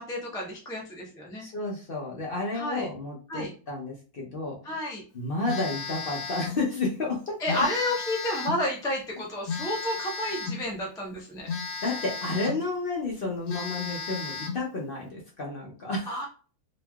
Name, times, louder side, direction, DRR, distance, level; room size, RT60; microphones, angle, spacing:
voice 1, 0.0-1.5 2.5-2.9 3.3-3.5 4.6-5.0 7.4-11.5 16.1-16.3, left 1 dB, 5° left, -2 dB, 0.3 m, -31 dB
voice 2, 1.4-4.8 5.1-7.6 11.8-16.1, left 3 dB, 50° left, -3 dB, 0.8 m, -31 dB
Telephone, 5.5-6.6 7.5-8.7 9.5-10.7 11.5-12.7 13.1-13.2 13.5-14.7, left 5 dB, 75° left, 1.3 m, -34 dB
2.9 x 2.9 x 2.2 m, 0.37 s
omnidirectional pair, 1.6 m